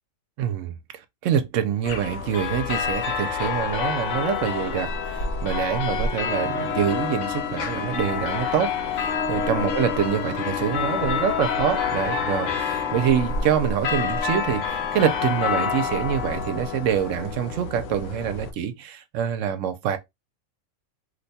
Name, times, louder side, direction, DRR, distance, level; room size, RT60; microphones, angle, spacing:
voice 1, 0.4-0.8 1.2-20.0, right 9 dB, 70° right, 0.9 m, -26 dB
sound 1, 1.8-18.5, left 6 dB, 70° left, 0.9 m, -27 dB
2.8 x 2.2 x 4.0 m
omnidirectional pair, 1.5 m